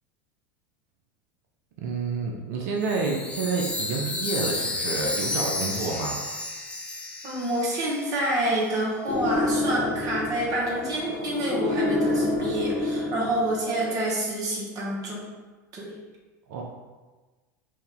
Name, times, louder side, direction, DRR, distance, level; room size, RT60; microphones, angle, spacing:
voice 1, 1.8-6.2 16.5-16.6, right 4 dB, 65° right, 0 dB, 0.6 m, -29 dB
Chime, 2.8-8.4, left 2 dB, 10° left, 0.6 m, -32 dB
voice 2, 7.2-15.3 15.7-16.0, right 1 dB, 40° right, -4 dB, 1.4 m, -28 dB
sound 1, 9.1-13.7, left 2 dB, 50° left, 1.0 m, -28 dB
4.4 x 2.7 x 3.6 m, 1.3 s
hypercardioid pair, 90°, 10 cm